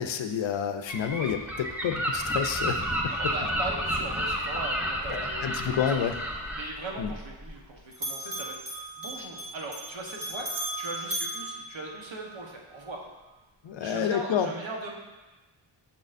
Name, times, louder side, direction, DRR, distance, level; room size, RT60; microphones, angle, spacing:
voice 1, 0.0-3.3 5.1-6.2 7.0-7.1 13.6-14.5, left 8 dB, 65° left, 8 dB, 0.5 m, -29 dB
Gull seagull, 0.9-6.7, equal, 5° right, 0.6 m, -31 dB
voice 2, 3.1-5.9 6.2-6.3 6.6-13.1 13.8-14.9, right 2 dB, 65° right, -1 dB, 1.2 m, -39 dB
Bell, 6.3-7.7 7.9-12.4, right 1 dB, 45° right, 1.8 m, -37 dB
6.5 x 5.6 x 2.6 m, 1.1 s
wide cardioid pair, 100°, 49 cm